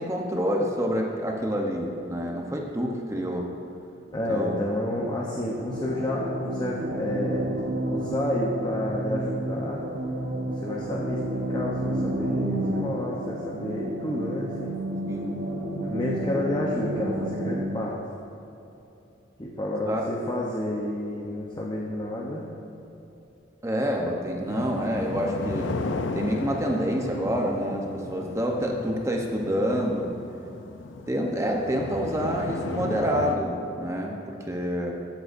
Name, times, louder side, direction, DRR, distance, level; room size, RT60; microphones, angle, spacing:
voice 1, 0.0-3.5 4.3-4.5 15.1-15.3 19.9-20.0 23.6-25.7 26.1-30.1 31.1-34.9, equal, 15° right, 0 dB, 0.8 m, -27 dB
voice 2, 4.1-7.4 7.9-9.8 10.4-14.8 15.8-18.0 19.4-22.5, left 1 dB, 20° left, -3 dB, 0.7 m, -30 dB
sound 1, 5.7-17.7, right 1 dB, 65° right, 0.9 m, -30 dB
sound 2, 24.5-33.4, left 3 dB, 75° left, 0.5 m, -35 dB
14.5 x 7.7 x 2.6 m, 2.9 s
head